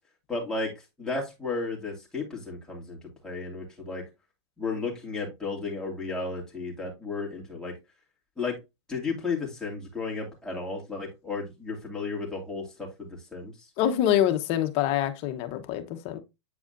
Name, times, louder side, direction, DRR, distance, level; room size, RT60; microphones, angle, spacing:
voice 1, 0.3-0.7 1.0-3.0 3.2-4.0 4.6-7.7 8.4-8.6 8.9-13.7, left 4 dB, 5° left, 2.6 m, -33 dB
voice 2, 13.8-16.2, left 11 dB, 40° left, 1.1 m, -25 dB
8.5 x 4.8 x 2.6 m
hypercardioid pair, 125°, 15 cm